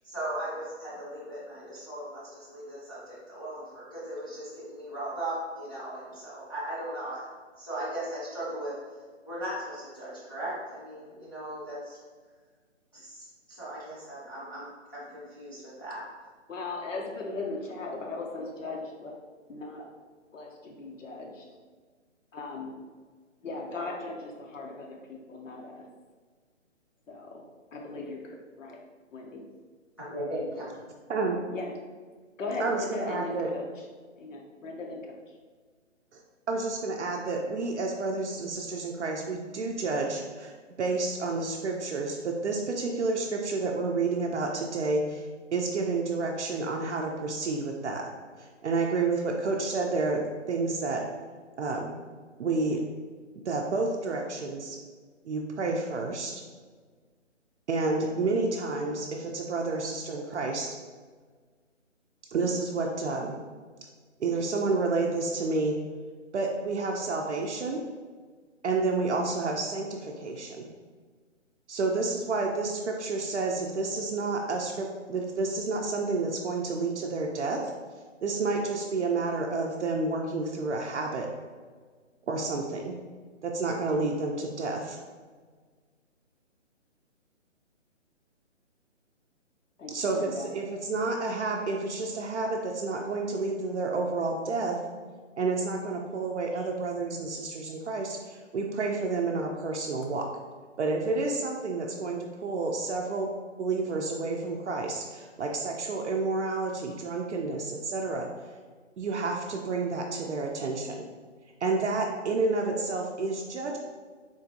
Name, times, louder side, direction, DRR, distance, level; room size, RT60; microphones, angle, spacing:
voice 1, 0.0-7.2 7.6-8.7 9.3-12.0 12.9-16.0 30.0-30.6, right 1 dB, 20° left, -12 dB, 0.4 m, -37 dB
voice 2, 16.5-19.2 19.5-19.9 20.3-21.5 22.3-22.8 23.4-25.9 27.1-27.4 27.7-28.8 29.1-29.4 31.5-31.7 32.4-33.9 34.2-35.4 89.8-90.5 96.5-96.6, left 3 dB, 90° left, 0 dB, 0.7 m, -38 dB
voice 3, 32.6-33.5 36.1-36.2 36.5-48.0 48.4-50.2 50.5-51.0 51.6-51.9 52.4-52.8 53.5-54.8 55.2-56.4 57.7-60.7 62.3-63.4 64.2-65.8 66.3-67.8 68.6-70.7 71.7-77.6 78.2-81.3 82.3-83.0 83.4-85.0 89.9-94.8 95.4-100.2 100.8-103.3 103.6-108.3 109.0-111.0 111.6-113.8, right 3 dB, 65° right, 1 dB, 0.5 m, -30 dB
3.7 x 2.5 x 2.6 m, 1.5 s
hypercardioid pair, 150°, 37 cm